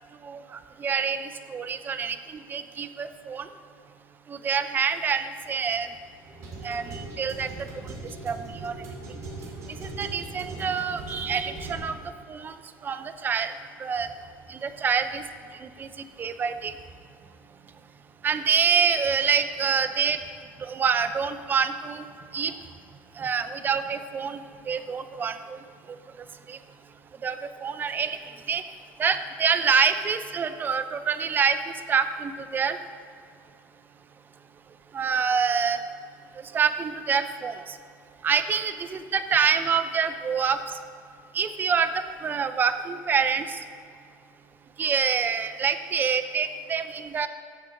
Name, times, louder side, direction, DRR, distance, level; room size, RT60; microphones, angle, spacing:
voice 1, 0.2-2.2 2.5-3.5 4.3-5.9 6.6-7.5 8.2-8.7 9.8-11.9 12.3-12.5 12.8-13.5 13.8-14.1 14.5-15.2 15.6-15.9 16.2-16.7 18.2-20.2 20.6-22.0 22.3-22.5 23.2-24.4 24.7-25.6 26.5-26.6 27.2-28.2 28.5-28.6 29.0-31.6 31.9-32.8 34.9-35.8 36.5-37.7 38.2-40.6 41.3-43.6 44.8-47.3, right 6 dB, 30° right, 11 dB, 0.5 m, -26 dB
sound 1, 5.6-11.7, right 2 dB, 55° right, 2.4 m, -40 dB
14.0 x 5.0 x 3.9 m, 2.3 s
supercardioid pair, 105°, 7 cm